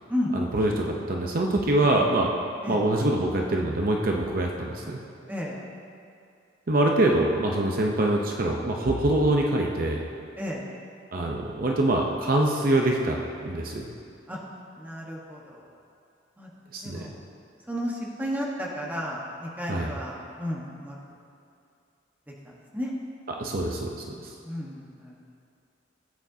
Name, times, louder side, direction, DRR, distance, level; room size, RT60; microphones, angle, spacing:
voice 1, 0.3-2.3 2.7-5.0 6.7-10.0 11.1-13.2 13.4-13.9 16.7-17.1 19.7-19.9 23.4-24.3, right 1 dB, 50° right, 0 dB, 0.7 m, -24 dB
voice 2, 14.8-15.7 16.4-16.5 16.8-17.2 17.7-21.0 22.3-22.9 24.4-25.2, equal, 10° right, -3 dB, 1.2 m, -33 dB
15.5 x 8.6 x 2.8 m, 2.4 s
head